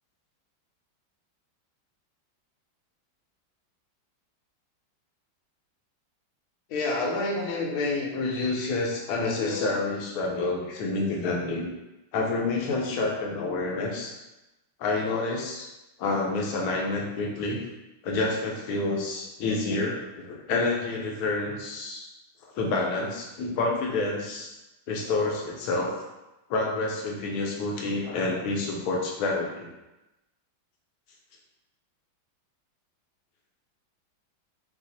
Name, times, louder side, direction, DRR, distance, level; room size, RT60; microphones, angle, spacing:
voice 1, 6.7-11.7 12.1-14.2 14.8-15.7 16.0-17.6 18.0-22.1 22.5-24.5 24.9-25.9 26.5-29.7, left 3 dB, 65° left, -1 dB, 1.1 m, -28 dB
4.8 x 2.0 x 4.1 m, 0.98 s
omnidirectional pair, 2.2 m